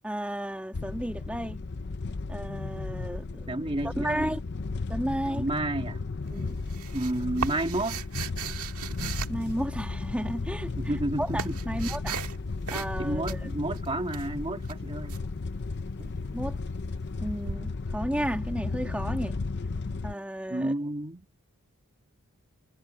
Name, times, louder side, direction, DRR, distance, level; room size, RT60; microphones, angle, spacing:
voice 1, 0.0-1.6 2.3-4.4 4.9-5.5 6.3-6.6 9.3-10.7 11.2-12.2 12.7-13.4 16.3-16.6 17.2-19.4 20.0-20.7, equal, 5° right, 2.1 m, -33 dB
sound 1, 0.7-20.1, left 3 dB, 50° left, 0.6 m, -34 dB
voice 2, 3.5-4.4 5.3-6.0 6.9-8.0 10.8-11.6 13.0-15.2 16.0-16.1 20.5-21.3, right 1 dB, 25° right, 1.9 m, -31 dB
sound 2, 6.3-10.1 10.8-12.4 12.7-13.0 13.2-15.2 17.5-17.6, right 6 dB, 80° right, 1.8 m, -37 dB
head